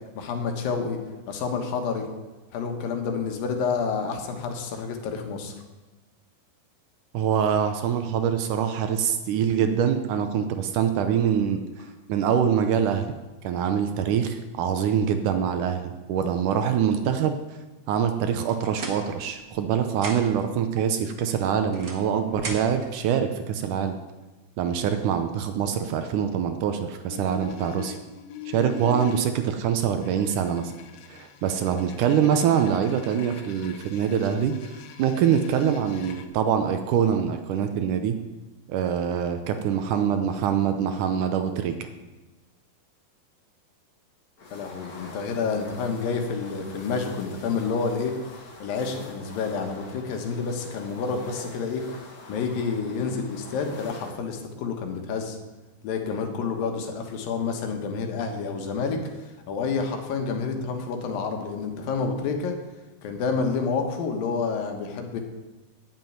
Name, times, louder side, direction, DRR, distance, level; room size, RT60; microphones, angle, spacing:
voice 1, 0.2-1.0 1.3-2.1 2.5-5.6 44.5-51.8 52.3-55.4 55.8-62.6 63.0-65.2, left 5 dB, 70° left, 4 dB, 3.0 m, -29 dB
voice 2, 7.1-13.1 13.4-17.4 17.9-24.0 24.6-28.0 28.5-30.7 31.1-38.2 38.7-41.9, right 8 dB, 75° right, 8 dB, 2.0 m, -24 dB
sound 1, 18.3-19.6 19.9-20.5 21.3-22.9, right 3 dB, 45° right, 1.5 m, -38 dB
sound 2, 27.1-29.2 30.0-36.3, left 10 dB, 90° left, 2.9 m, -43 dB
sound 3, 44.4-54.1, left 3 dB, 55° left, 1.0 m, -44 dB
9.8 x 7.6 x 9.3 m, 1.2 s
omnidirectional pair, 4.3 m